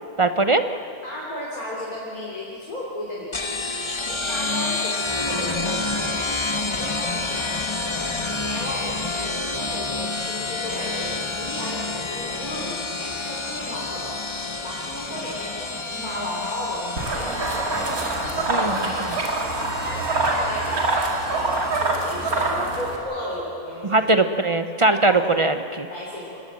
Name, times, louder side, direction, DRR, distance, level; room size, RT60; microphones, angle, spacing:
voice 1, 0.2-0.6 18.5-19.2 23.8-25.9, right 2 dB, 35° right, 8 dB, 0.5 m, -21 dB
voice 2, 1.0-3.4 4.1-6.3 6.8-19.0 19.9-20.9 21.2-24.1 24.9-25.4 25.9-26.4, left 1 dB, 80° left, -6 dB, 4.0 m, -35 dB
sound 1, 3.3-22.5, left 3 dB, 20° left, 1.0 m, -29 dB
sound 2, 17.0-23.0, right 2 dB, 80° right, 2.8 m, -25 dB
26.5 x 18.5 x 7.6 m, 2.7 s
omnidirectional pair, 1.5 m